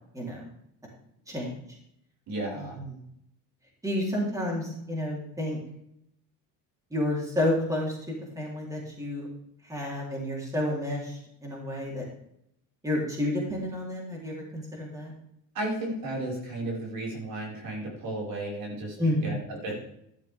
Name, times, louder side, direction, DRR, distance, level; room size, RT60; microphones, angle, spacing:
voice 1, 0.1-0.5 1.3-1.6 2.6-3.0 3.8-5.6 6.9-9.3 9.6-12.0 12.8-15.1 19.0-19.3, left 1 dB, 10° right, -3 dB, 3.8 m, -30 dB
voice 2, 2.3-2.8 15.5-19.0 19.2-19.7, right 1 dB, 55° right, -2 dB, 5.5 m, -33 dB
12.5 x 12.0 x 3.6 m, 0.77 s
cardioid pair, 120°, 40 cm